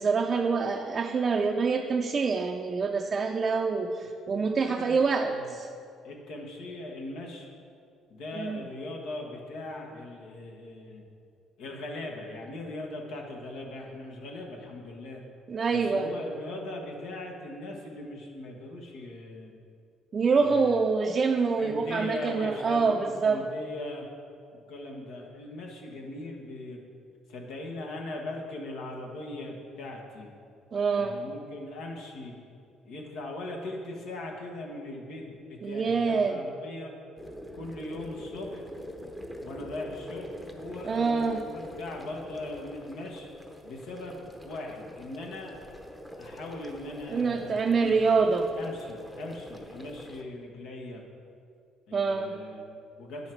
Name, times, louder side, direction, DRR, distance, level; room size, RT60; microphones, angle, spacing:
voice 1, 0.0-5.7 8.3-8.6 15.5-16.1 20.1-23.4 30.7-31.2 35.6-36.4 40.8-41.4 47.1-48.5 51.9-52.4, right 4 dB, 40° right, 2 dB, 0.5 m, -26 dB
voice 2, 4.4-5.5 6.0-7.5 8.1-11.0 11.6-15.2 15.7-19.5 20.3-20.7 21.6-24.1 24.7-26.8 27.3-30.3 30.9-32.3 32.8-36.9 37.5-38.6 39.4-43.3 43.6-45.6 46.2-47.9 48.5-51.0 51.9-53.3, left 2 dB, 80° left, 0 dB, 1.3 m, -40 dB
sound 1, 37.2-50.2, equal, 10° left, 0.8 m, -44 dB
9.4 x 5.7 x 4.5 m, 2.4 s
cardioid pair, 85°, 0 cm